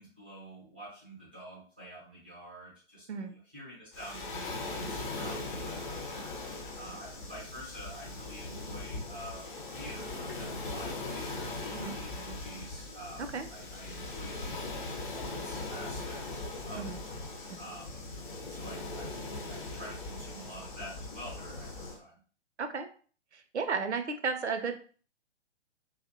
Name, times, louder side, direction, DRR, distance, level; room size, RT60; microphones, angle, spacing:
voice 1, 0.0-14.6 14.9-16.9 17.2-18.0 18.4-19.1 19.5-22.2, right 1 dB, 10° right, -7 dB, 0.3 m, -48 dB
Waves surf, 3.9-22.0, left 2 dB, 45° left, 0.7 m, -40 dB
voice 2, 23.3-24.8, right 5 dB, 80° right, 8 dB, 0.5 m, -34 dB
2.6 x 2.1 x 2.5 m, 0.41 s
figure-of-eight pair, 120°, 34 cm